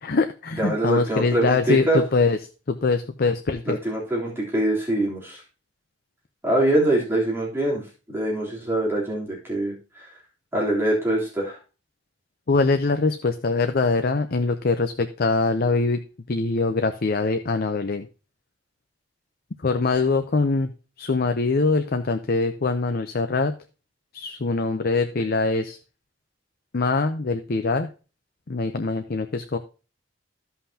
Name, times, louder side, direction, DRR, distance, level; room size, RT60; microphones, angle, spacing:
voice 1, 0.0-2.4 2.7-3.8 12.5-16.0 16.3-18.1 19.6-20.7 21.0-23.6 24.1-25.8 26.7-27.9 28.5-29.6, left 3 dB, 55° left, 7 dB, 0.7 m, -23 dB
voice 2, 0.6-2.0 3.6-5.4 6.4-10.1 10.5-11.6, right 1 dB, 15° right, -5 dB, 3.4 m, -24 dB
15.0 x 5.6 x 2.8 m, 0.33 s
head